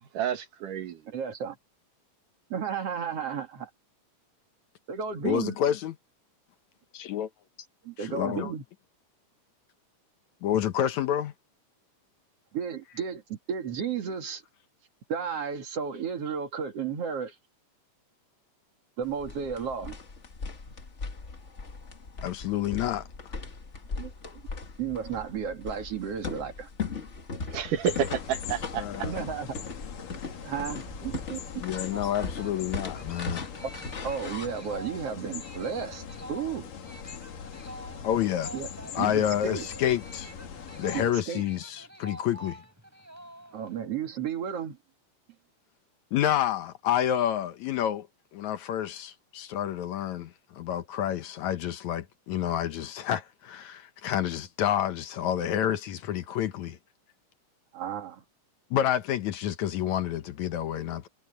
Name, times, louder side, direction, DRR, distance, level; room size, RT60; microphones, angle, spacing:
voice 1, 0.1-1.2 27.5-28.8, right 8 dB, 80° right, 3.3 m, -30 dB
voice 2, 1.1-1.6 2.5-3.7 4.9-5.6 7.8-8.6 12.5-14.4 15.1-17.3 19.0-20.0 24.0-24.4 24.8-26.7 29.0-29.6 30.3-31.6 34.0-36.7 38.5-38.7 39.0-39.7 40.9-41.4 43.5-44.8 57.7-58.2, right 7 dB, 50° right, 2.8 m, -33 dB
voice 3, 5.2-5.9 6.9-7.3 8.0-8.5 10.4-11.3 22.2-23.3 28.8-29.2 31.6-33.5 38.0-38.5 39.0-40.3 40.8-42.6 46.1-48.1 48.3-56.8 58.7-61.1, left 10 dB, 70° left, 2.2 m, -29 dB
sound 1, 19.0-34.5, left 4 dB, 35° left, 1.1 m, -39 dB
sound 2, 27.8-41.1, left 7 dB, 90° left, 4.2 m, -42 dB
sound 3, 31.9-43.8, right 1 dB, 5° right, 3.4 m, -47 dB
omnidirectional pair, 3.7 m